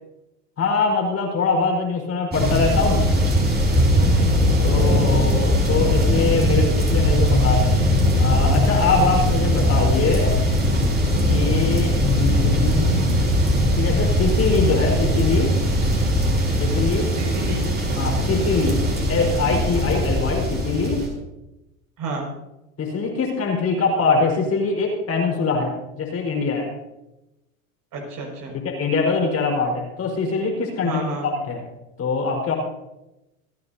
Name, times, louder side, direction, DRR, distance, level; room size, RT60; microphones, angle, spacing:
voice 1, 0.6-3.0 4.6-7.8 8.2-10.3 11.3-13.1 13.7-15.5 16.6-17.1 18.0-18.8 19.1-21.1 22.8-26.7 28.5-31.6 32.0-32.5, left 4 dB, 35° left, 0 dB, 4.4 m, -23 dB
sound 1, 2.3-21.1, equal, 25° right, 5.2 m, -20 dB
voice 2, 17.2-17.6 22.0-22.3 27.9-28.5 30.8-31.3, right 3 dB, 45° right, 0 dB, 5.7 m, -31 dB
27.0 x 9.8 x 2.8 m, 0.95 s
hypercardioid pair, 100°, 41 cm